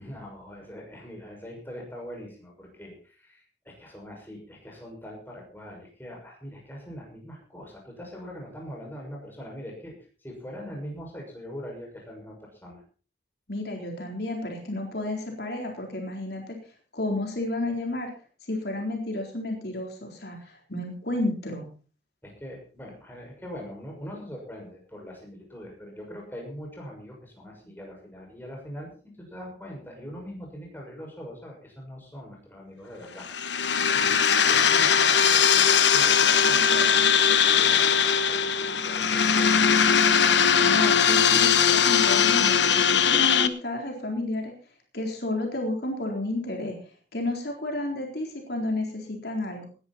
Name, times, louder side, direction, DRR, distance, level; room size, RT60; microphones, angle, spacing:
voice 1, 0.0-12.8 20.4-20.5 22.2-33.3 33.5-39.5, equal, 10° left, -1 dB, 6.3 m, -42 dB
voice 2, 13.5-16.6 16.9-18.1 18.5-21.7 40.6-44.5 44.9-49.7, left 2 dB, 65° left, 1 dB, 3.9 m, -31 dB
sound 1, 33.2-43.5, left 7 dB, 80° left, 1.2 m, -20 dB
19.5 x 11.0 x 4.3 m, 0.38 s
head